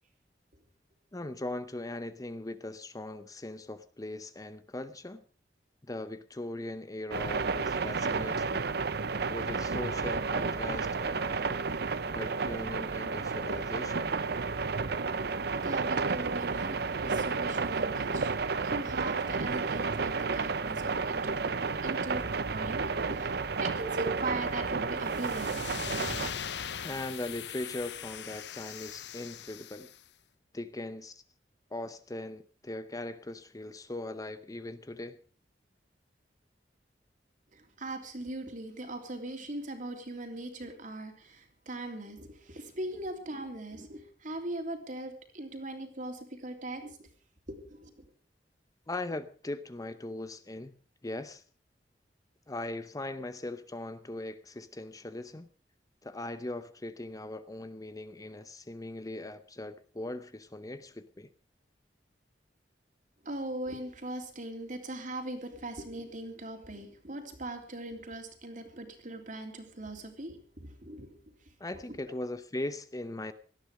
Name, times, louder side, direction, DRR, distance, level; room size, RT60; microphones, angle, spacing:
voice 1, 1.1-5.2 5.9-8.7 9.3-11.7 12.0-14.1 26.8-29.9 30.5-31.2 31.7-35.2 48.9-50.8 51.0-51.4 52.5-55.5 56.0-61.3 71.6-73.3, left 2 dB, 20° left, 0.7 m, -39 dB
sound 1, 7.1-26.3, right 4 dB, 65° right, 0.8 m, -31 dB
voice 2, 15.6-21.5 21.8-22.3 22.5-25.9 37.5-47.1 47.5-48.0 63.2-71.4 71.9-72.0, right 2 dB, 50° right, 3.2 m, -40 dB
sound 2, 25.1-30.0, left 8 dB, 70° left, 0.8 m, -40 dB
18.0 x 13.0 x 5.0 m
head